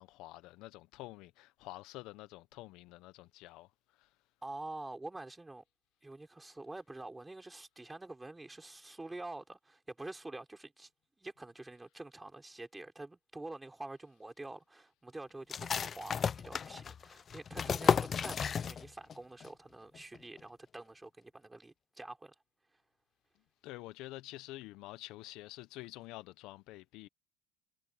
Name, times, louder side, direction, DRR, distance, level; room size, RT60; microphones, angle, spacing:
voice 1, 0.0-3.7 4.0-4.1 23.6-27.1, left 18 dB, 60° left, 0.8 m, -48 dB
voice 2, 4.4-5.6 6.0-10.9 11.2-22.3, right 2 dB, 10° right, 4.8 m, -47 dB
sound 1, 15.5-19.1 19.4-19.5 19.9-20.4, left 7 dB, 30° left, 0.5 m, -33 dB
supercardioid pair, 130°, 0 cm